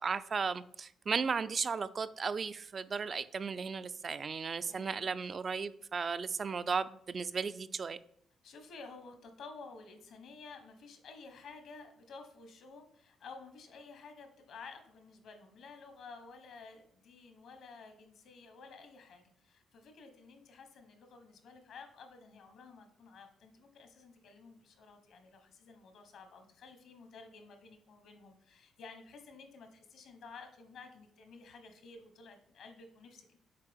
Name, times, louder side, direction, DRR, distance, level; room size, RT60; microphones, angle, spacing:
voice 1, 0.0-8.0, right 5 dB, 40° right, 15 dB, 0.3 m, -35 dB
voice 2, 4.7-5.2 8.4-33.4, left 4 dB, 70° left, 7 dB, 1.1 m, -53 dB
6.6 x 4.2 x 3.6 m, 0.69 s
cardioid pair, 90°, 0 cm